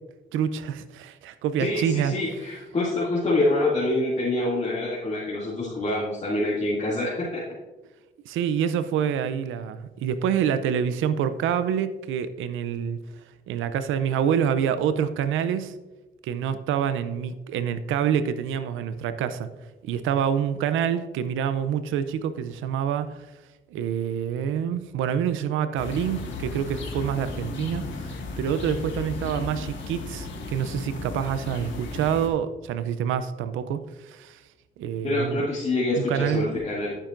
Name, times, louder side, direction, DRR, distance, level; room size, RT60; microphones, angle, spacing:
voice 1, 0.3-2.2 8.3-13.0 13.5-15.7 16.2-19.5 19.8-23.2 23.7-34.4 34.8-35.4 36.0-36.5, right 8 dB, 85° right, 12 dB, 0.6 m, -27 dB
voice 2, 1.6-7.4 35.0-37.0, left 2 dB, 35° left, -8 dB, 2.5 m, -26 dB
sound 1, 25.8-32.3, left 3 dB, 70° left, 1.9 m, -35 dB
13.5 x 7.4 x 2.6 m, 1.1 s
cardioid pair, 90°, 20 cm